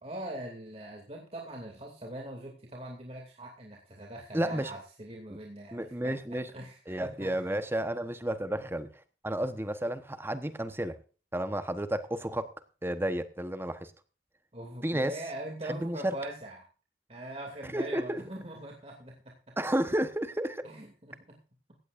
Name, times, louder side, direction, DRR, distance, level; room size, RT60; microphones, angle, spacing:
voice 1, 0.0-7.4 14.5-16.6 17.1-19.6 20.6-21.4, right 1 dB, 35° right, 0 dB, 2.5 m, -42 dB
voice 2, 4.3-4.7 5.7-6.5 6.9-8.9 9.2-11.0 11.3-12.5 12.8-13.9 14.8-15.1 15.7-16.1 17.7-18.2 19.6-20.6, right 1 dB, 15° right, 10 dB, 1.0 m, -31 dB
17.5 x 15.5 x 2.5 m, 0.36 s
head